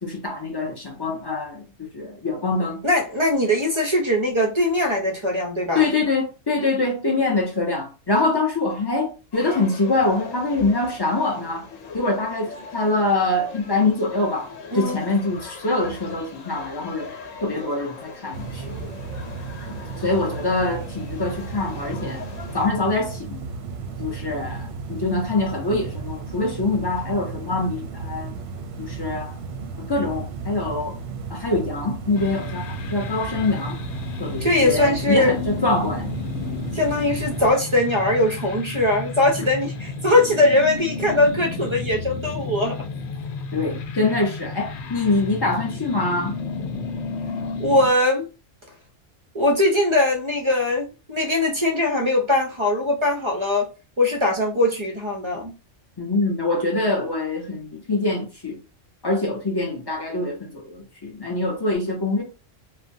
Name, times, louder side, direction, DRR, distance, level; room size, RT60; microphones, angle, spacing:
voice 1, 0.0-2.8 5.7-11.7 11.9-17.1 17.4-18.8 20.0-22.2 22.5-23.5 24.0-28.3 28.8-29.4 29.8-31.0 31.3-33.8 34.2-36.1 43.5-46.3 56.0-58.6 59.0-62.2, left 2 dB, 40° left, 0.3 m, -24 dB
voice 2, 2.8-5.9 14.7-15.1 34.4-35.3 36.7-42.8 47.6-48.3 49.3-53.7 54.0-55.5, left 1 dB, 50° right, 0.3 m, -21 dB
sound 1, 9.3-22.7, left 4 dB, 85° left, 1.1 m, -40 dB
sound 2, 18.3-37.5, right 5 dB, 65° right, 0.7 m, -34 dB
sound 3, 32.1-47.9, left 4 dB, 65° left, 0.8 m, -32 dB
3.2 x 2.1 x 2.6 m
omnidirectional pair, 1.3 m